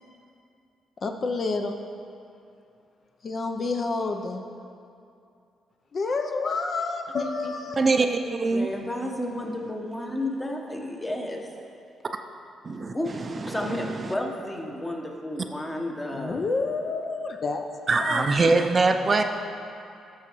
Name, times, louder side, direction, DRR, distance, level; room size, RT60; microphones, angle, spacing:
voice 1, 1.0-1.8 3.2-4.4 5.9-7.8 16.1-17.7 17.9-18.3 19.2-19.3, left 3 dB, 45° left, 4 dB, 0.5 m, -29 dB
voice 2, 7.8-8.7 12.6-12.9 17.9-19.2, right 3 dB, 35° right, 6 dB, 0.4 m, -22 dB
voice 3, 8.5-11.5 12.9-13.1 13.4-16.5, left 1 dB, 15° left, 1 dB, 1.0 m, -32 dB
12.5 x 6.2 x 3.0 m, 2.6 s
cardioid pair, 90°, 0 cm